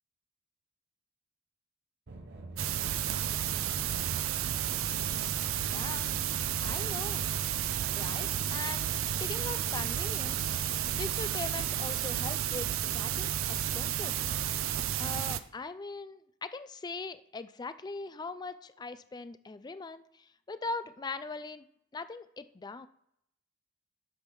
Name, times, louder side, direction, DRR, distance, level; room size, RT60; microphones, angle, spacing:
sound 1, 2.1-10.9, right 2 dB, 55° right, 0.9 m, -47 dB
sound 2, 2.6-15.4, right 10 dB, 70° right, 0.5 m, -32 dB
voice 1, 5.6-6.1 6.6-7.3 8.0-8.9 9.2-10.7 11.0-14.2 15.0-21.7 21.9-22.9, left 3 dB, 20° left, 12 dB, 0.3 m, -41 dB
9.7 x 3.5 x 6.0 m, 0.76 s
head